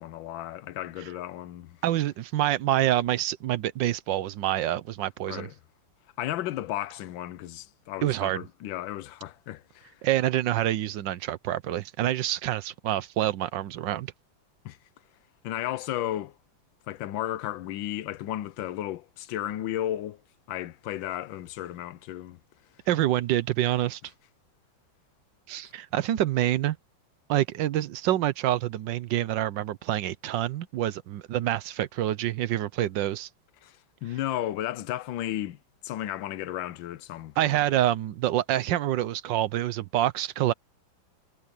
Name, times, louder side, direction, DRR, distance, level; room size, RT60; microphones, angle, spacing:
voice 1, 0.0-1.8 5.3-5.5 6.2-10.0 14.6-14.8 15.4-16.3 16.9-20.2 20.5-22.4 33.6-35.6 35.8-37.6, left 13 dB, 80° left, 1.5 m, -34 dB
voice 2, 1.8-5.5 8.0-8.4 10.0-14.1 22.9-24.0 25.5-26.8 27.3-33.3 37.4-40.5, right 13 dB, 75° right, 1.4 m, -27 dB
omnidirectional pair, 2.1 m